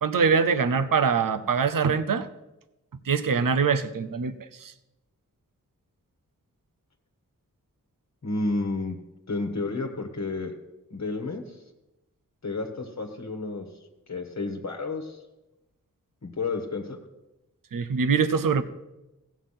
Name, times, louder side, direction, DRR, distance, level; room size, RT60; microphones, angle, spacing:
voice 1, 0.0-2.3 3.1-4.3 4.6-4.7 17.7-18.6, right 5 dB, 80° right, 13 dB, 0.7 m, -23 dB
voice 2, 8.2-9.0 9.3-10.5 10.9-11.6 12.4-13.7 14.1-15.2 16.2-17.0, left 3 dB, 55° left, 4 dB, 1.3 m, -31 dB
16.0 x 7.1 x 5.7 m, 0.99 s
wide cardioid pair, 90°, 33 cm